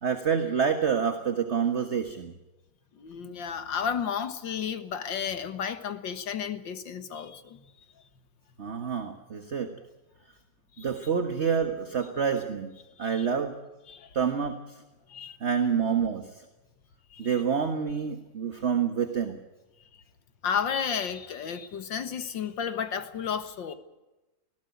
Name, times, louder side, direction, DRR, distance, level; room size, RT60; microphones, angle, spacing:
voice 1, 0.0-2.3 8.6-9.7 10.8-12.7 13.0-13.5 14.1-14.6 15.4-16.3 17.2-19.4, right 7 dB, 40° right, 1.6 m, -27 dB
voice 2, 3.0-7.6 10.8-10.9 13.0-13.3 13.9-14.1 15.1-15.4 17.1-17.3 20.4-23.7, left 7 dB, 75° left, 2.1 m, -32 dB
20.0 x 17.0 x 9.3 m
omnidirectional pair, 2.0 m